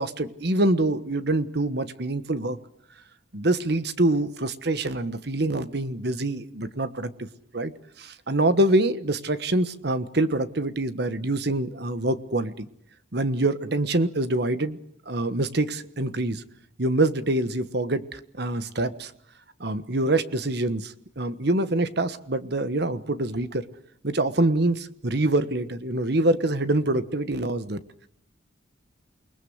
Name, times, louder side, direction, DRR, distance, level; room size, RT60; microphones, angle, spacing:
voice 1, 0.0-2.6 3.3-7.3 7.5-7.7 8.0-12.7 13.1-14.8 15.1-16.4 16.8-19.1 19.6-23.6 24.0-27.8, right 2 dB, 60° right, 12 dB, 1.3 m, -25 dB
28.5 x 20.5 x 8.0 m, 0.71 s
head